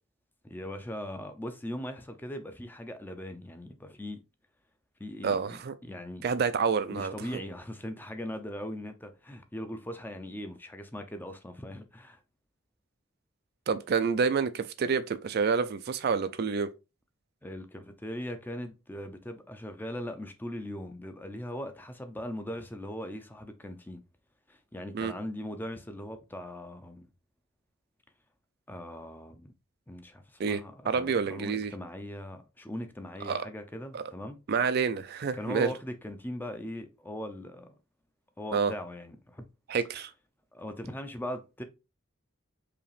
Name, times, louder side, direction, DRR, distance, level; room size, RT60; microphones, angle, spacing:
voice 1, 0.4-4.2 5.0-6.3 6.9-12.2 17.4-24.0 24.5-27.1 28.7-29.5 29.9-34.4 35.3-37.7 38.4-39.5 40.5-41.6, left 1 dB, 10° left, 0.5 m, -40 dB
voice 2, 5.2-5.7 6.2-7.1 13.7-16.7 24.9-25.1 30.4-30.6 30.9-31.7 33.2-33.4 33.9-34.0 34.5-35.7 38.5-38.7 39.7-40.1, right 5 dB, 50° right, 0.4 m, -28 dB
4.8 x 3.0 x 3.2 m
head